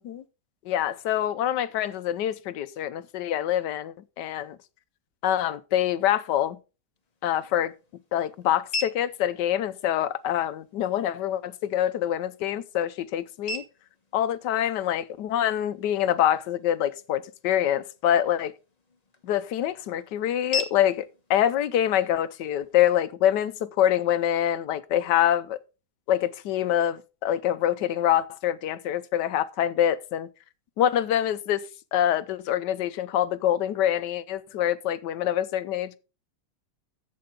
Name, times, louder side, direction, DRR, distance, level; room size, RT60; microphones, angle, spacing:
voice 1, 0.7-4.6 5.2-6.6 7.2-7.7 8.1-13.6 14.1-18.5 19.2-25.6 26.1-30.3 30.8-31.6 31.9-36.0, left 11 dB, 80° left, 1.4 m, -25 dB
sound 1, 7.0-23.0, left 3 dB, 25° left, 1.3 m, -41 dB
11.5 x 7.8 x 3.8 m
omnidirectional pair, 1.8 m